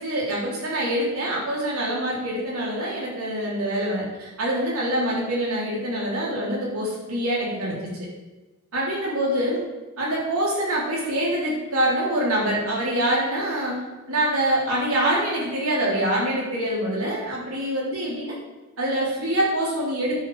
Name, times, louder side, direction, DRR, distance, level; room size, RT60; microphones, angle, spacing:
voice 1, 0.0-8.1 8.7-9.6 10.0-13.8 14.1-18.3 18.8-20.2, right 1 dB, 80° right, -5 dB, 3.7 m, -25 dB
10.0 x 7.1 x 5.0 m, 1.1 s
head